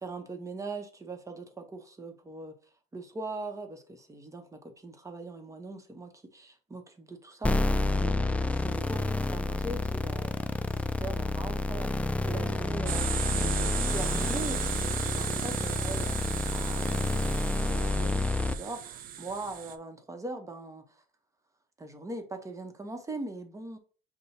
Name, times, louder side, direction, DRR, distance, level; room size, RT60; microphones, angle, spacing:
voice 1, 0.0-2.5 2.9-21.0 21.8-23.8, right 2 dB, 20° right, 0.9 m, -41 dB
sound 1, 7.4-18.5, left 2 dB, 10° left, 0.3 m, -29 dB
sound 2, 12.9-19.8, right 10 dB, 55° right, 0.5 m, -36 dB
5.5 x 2.2 x 4.2 m
cardioid pair, 110°, 17 cm